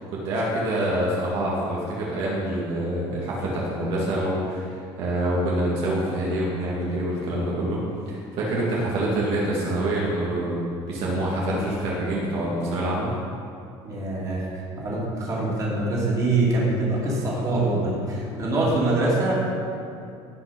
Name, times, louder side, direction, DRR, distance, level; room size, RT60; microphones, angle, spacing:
voice 1, 0.0-7.8 8.1-13.1, right 1 dB, 60° right, -5 dB, 2.2 m, -26 dB
voice 2, 13.8-19.3, right 2 dB, 30° right, -5 dB, 2.9 m, -24 dB
17.0 x 5.9 x 5.3 m, 2.5 s
cardioid pair, 175°, 11 cm